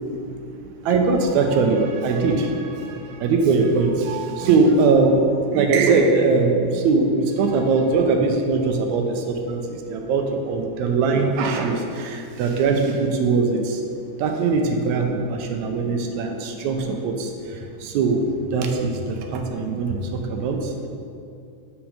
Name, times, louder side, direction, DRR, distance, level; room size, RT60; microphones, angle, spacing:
voice 1, 0.3-13.8 14.2-18.2 18.5-20.9, right 4 dB, 80° right, 3 dB, 1.9 m, -21 dB
6.0 x 5.3 x 5.0 m, 2.5 s
omnidirectional pair, 3.5 m